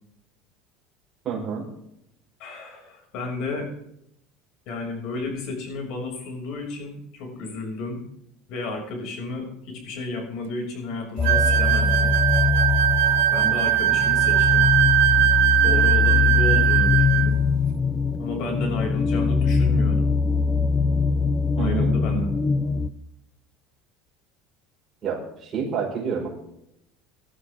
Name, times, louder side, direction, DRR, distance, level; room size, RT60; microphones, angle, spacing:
voice 1, 1.2-1.7 21.6-21.9 25.0-26.3, right 6 dB, 30° right, -4 dB, 5.4 m, -28 dB
voice 2, 2.4-3.7 4.7-8.1 8.5-12.2 13.3-14.7 15.6-17.4 18.2-20.2 21.6-22.3, left 2 dB, 60° left, 3 dB, 6.4 m, -32 dB
sound 1, 11.2-22.9, left 5 dB, 20° left, 0.6 m, -22 dB
sound 2, 11.2-17.3, right 14 dB, 85° right, 0.9 m, -20 dB
19.0 x 12.5 x 3.7 m, 0.76 s
cardioid pair, 145°, 0 cm